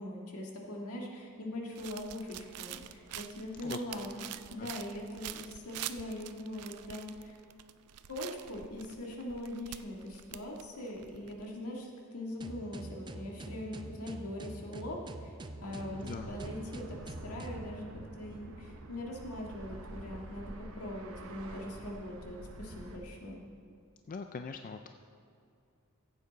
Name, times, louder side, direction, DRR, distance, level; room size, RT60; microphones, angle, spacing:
voice 1, 0.0-4.2 4.5-7.4 8.1-15.3 15.6-16.0 16.3-23.4, left 1 dB, 70° left, -1 dB, 1.8 m, -41 dB
sound 1, 1.8-11.4, right 12 dB, 85° right, 0.4 m, -46 dB
sound 2, 12.4-17.7, right 2 dB, 20° right, 0.5 m, -45 dB
sound 3, 15.6-23.0, right 1 dB, 65° right, 0.9 m, -47 dB
voice 2, 16.0-16.4 24.1-24.9, left 5 dB, 40° left, 6 dB, 0.3 m, -41 dB
14.5 x 8.3 x 4.0 m, 2.5 s
head